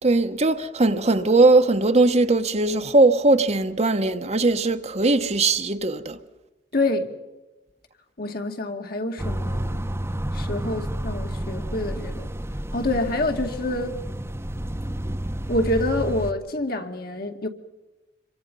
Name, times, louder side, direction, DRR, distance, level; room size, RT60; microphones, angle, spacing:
voice 1, 0.0-6.2, right 2 dB, 40° right, 1.0 m, -19 dB
voice 2, 6.7-7.1 8.2-9.8 10.3-12.3 12.7-13.9 15.5-17.5, left 2 dB, 60° left, 2.3 m, -27 dB
sound 1, 9.2-16.3, right 1 dB, 15° right, 0.9 m, -30 dB
27.0 x 24.0 x 5.5 m
head